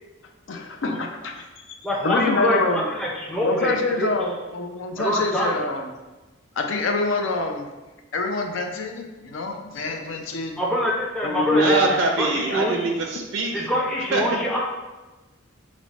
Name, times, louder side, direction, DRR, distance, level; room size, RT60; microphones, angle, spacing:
voice 1, 0.5-1.5 2.0-2.9 3.4-5.9 6.6-7.7 8.1-10.6 11.2-11.8, left 3 dB, 65° left, 3 dB, 0.5 m, -26 dB
voice 2, 1.8-4.1 5.0-5.5 10.6-12.7 13.5-14.6, equal, 5° left, -4 dB, 0.4 m, -25 dB
voice 3, 11.4-13.7 14.1-14.6, right 3 dB, 65° right, 3 dB, 0.4 m, -24 dB
6.1 x 2.1 x 4.0 m, 1.1 s
head